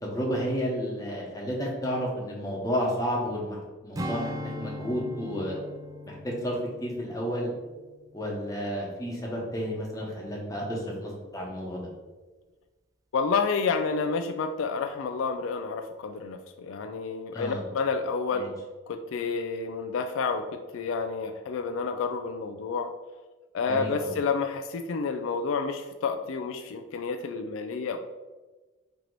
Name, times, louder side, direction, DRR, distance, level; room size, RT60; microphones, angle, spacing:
voice 1, 0.0-5.6 6.1-7.5 8.1-11.8 17.3-17.6 18.3-18.5 23.7-24.1, equal, 15° left, -2 dB, 0.9 m, -31 dB
Strum, 4.0-8.7 9.0-9.3, equal, 15° right, 0.3 m, -39 dB
voice 2, 13.1-18.5 18.9-22.9 23.5-28.0, left 5 dB, 70° left, 6 dB, 0.3 m, -29 dB
4.5 x 2.9 x 3.9 m, 1.2 s
head